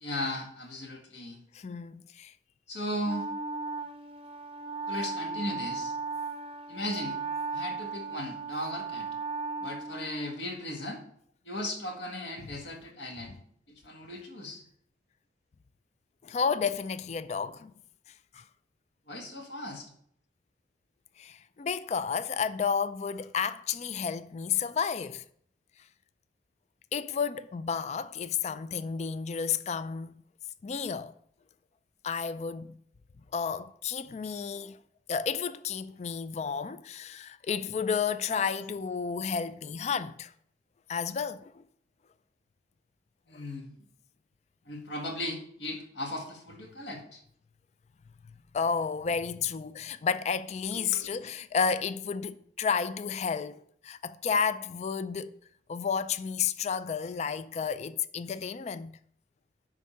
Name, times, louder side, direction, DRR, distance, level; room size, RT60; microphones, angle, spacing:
voice 1, 0.0-1.4 2.7-3.3 4.9-5.9 6.7-7.2 7.5-9.1 9.6-11.0 11.5-13.4 13.7-14.6 19.1-19.9 38.4-38.5 43.3-43.8 44.7-47.2 50.7-51.1, left 1 dB, 75° left, 1.8 m, -37 dB
voice 2, 1.5-2.3 16.2-17.7 18.3-18.4 21.2-25.2 26.9-30.1 30.6-31.1 32.0-32.8 33.3-34.8 35.1-40.3 40.9-41.6 43.3-43.4 48.5-55.3 55.7-58.9, left 6 dB, 35° left, 0.3 m, -31 dB
Wind instrument woodwind instrument, 3.0-10.6, right 4 dB, 30° right, 0.6 m, -36 dB
11.0 x 3.7 x 5.5 m
head